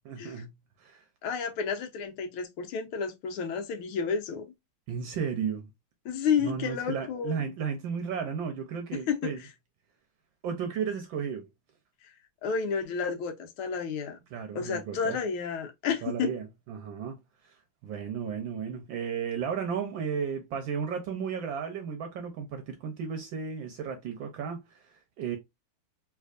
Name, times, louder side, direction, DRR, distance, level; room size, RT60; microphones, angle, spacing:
voice 1, 0.0-0.5 0.8-1.1 4.9-5.7 6.4-9.4 10.4-11.5 14.3-15.2 16.0-17.2 17.4-17.6 17.8-25.4, right 7 dB, 70° right, 1.3 m, -34 dB
voice 2, 1.2-4.4 6.0-7.4 9.1-9.3 12.4-14.2 14.5-16.3, left 6 dB, 85° left, 1.6 m, -31 dB
3.3 x 3.2 x 2.4 m
omnidirectional pair, 2.3 m